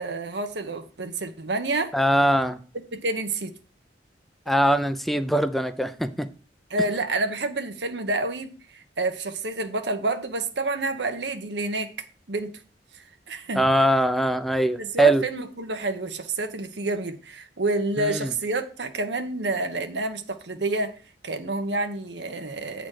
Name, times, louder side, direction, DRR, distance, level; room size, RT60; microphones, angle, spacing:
voice 1, 0.0-1.9 2.9-3.5 6.7-11.9 12.3-12.5 13.3-13.6 14.8-21.0 21.2-22.9, right 2 dB, 75° right, 1.1 m, -28 dB
voice 2, 1.9-2.6 4.5-6.3 13.6-15.2 18.0-18.3, right 1 dB, ahead, 0.6 m, -22 dB
8.9 x 4.1 x 6.4 m
head